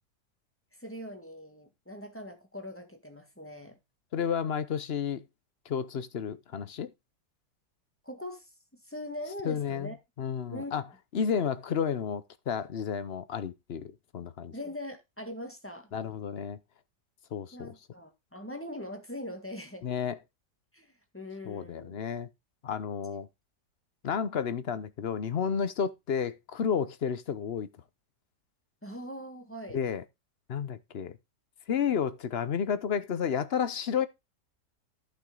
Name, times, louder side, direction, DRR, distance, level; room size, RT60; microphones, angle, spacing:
voice 1, 0.8-3.8 8.0-8.5 8.8-10.0 10.5-10.7 14.5-15.9 17.5-19.9 20.7-22.0 28.8-29.8, left 1 dB, 10° left, 1.6 m, -41 dB
voice 2, 4.1-5.2 5.7-6.9 9.4-9.9 10.2-10.8 11.1-14.5 15.9-16.6 17.3-17.7 19.8-20.2 21.4-22.3 22.6-23.3 24.0-27.7 29.7-30.0 30.5-31.2 31.7-34.1, left 7 dB, 50° left, 0.8 m, -31 dB
14.0 x 5.9 x 3.9 m
omnidirectional pair, 1.8 m